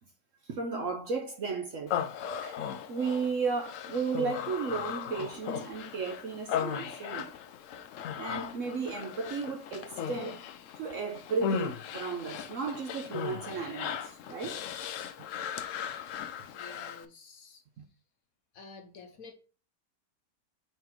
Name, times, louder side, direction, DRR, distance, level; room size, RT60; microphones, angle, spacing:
voice 1, 0.4-2.0 2.4-2.6 2.9-7.3 8.2-10.4 10.7-14.6 15.5-15.7, right 4 dB, 60° right, 0.9 m, -34 dB
Human voice, 1.9-17.1, left 8 dB, 80° left, 0.7 m, -37 dB
voice 2, 16.5-17.6 18.5-19.3, left 4 dB, 60° left, 1.1 m, -50 dB
5.6 x 3.9 x 4.4 m
omnidirectional pair, 1.9 m